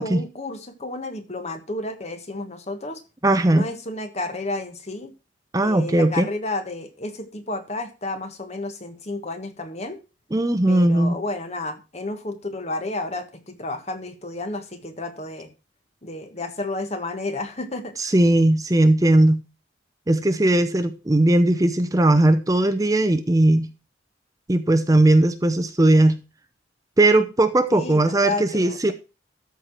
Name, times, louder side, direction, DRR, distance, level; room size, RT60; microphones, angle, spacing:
voice 1, 0.0-3.0 3.5-5.1 5.6-10.0 10.7-15.5 16.0-17.9 27.7-28.9, left 2 dB, 35° left, 8 dB, 1.4 m, -31 dB
voice 2, 3.2-3.7 5.5-6.3 10.3-11.2 18.0-19.4 20.1-23.7 24.5-26.2 27.0-28.9, right 1 dB, 20° right, 10 dB, 0.7 m, -18 dB
13.0 x 4.7 x 6.0 m, 0.31 s
head